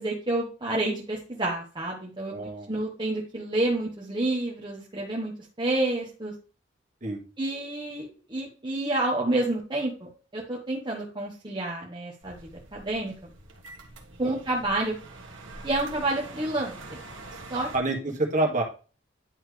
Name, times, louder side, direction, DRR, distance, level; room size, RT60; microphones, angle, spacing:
voice 1, 0.0-2.3 2.7-5.3 5.6-6.3 7.4-13.1 14.2-14.9 15.6-16.8 17.5-17.7, right 2 dB, 25° right, -3 dB, 1.3 m, -29 dB
voice 2, 2.3-2.7 7.0-7.2 14.2-14.4 17.7-18.6, right 2 dB, 45° right, 0 dB, 1.9 m, -27 dB
sound 1, 12.2-17.8, right 2 dB, 85° right, 1.5 m, -44 dB
10.0 x 4.4 x 3.3 m, 0.35 s
head